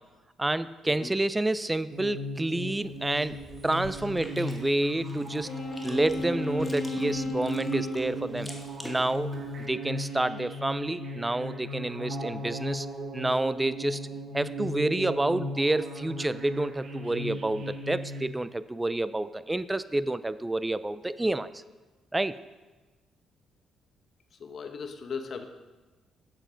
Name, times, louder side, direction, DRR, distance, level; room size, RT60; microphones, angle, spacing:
voice 1, 0.4-3.4 3.6-5.5 5.8-8.5 8.8-9.3 9.6-12.9 13.1-14.0 14.3-21.6 22.1-22.3, right 2 dB, 15° right, 15 dB, 0.4 m, -29 dB
sound 1, 1.9-18.2, equal, 55° right, 1.3 m, -37 dB
Chewing mastication, 2.7-9.7, left 1 dB, 5° left, 1.3 m, -48 dB
Wind instrument woodwind instrument, 5.4-8.3, left 2 dB, 85° left, 1.4 m, -34 dB
voice 2, 24.4-25.5, left 5 dB, 55° left, 7 dB, 0.9 m, -37 dB
7.6 x 7.5 x 5.1 m, 1.2 s
cardioid pair, 90°, 0 cm